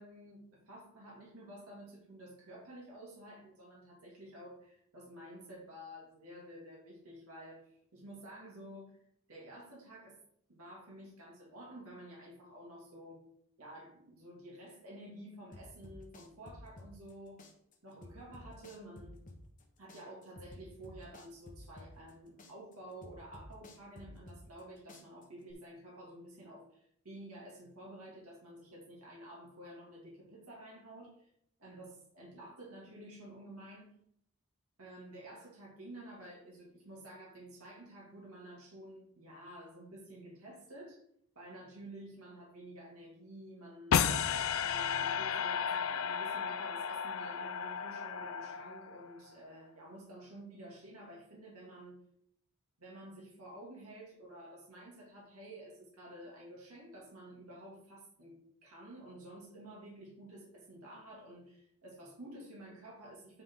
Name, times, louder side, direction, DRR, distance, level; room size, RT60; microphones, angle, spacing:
voice 1, 0.0-9.0 9.3-10.2 10.5-13.2 13.6-17.4 17.8-19.1 19.8-31.3 31.6-33.9 34.8-41.0 41.3-44.0 44.6-52.0 52.8-58.4 58.6-63.4, right 1 dB, 85° right, -3 dB, 2.5 m, -51 dB
sound 1, 15.5-17.1 17.4-19.6 19.9-22.1 22.4-24.6 24.9-25.5, left 1 dB, 35° left, 1.2 m, -52 dB
sound 2, 43.9-49.1, left 7 dB, 70° left, 0.4 m, -33 dB
9.5 x 5.1 x 3.8 m, 0.70 s
head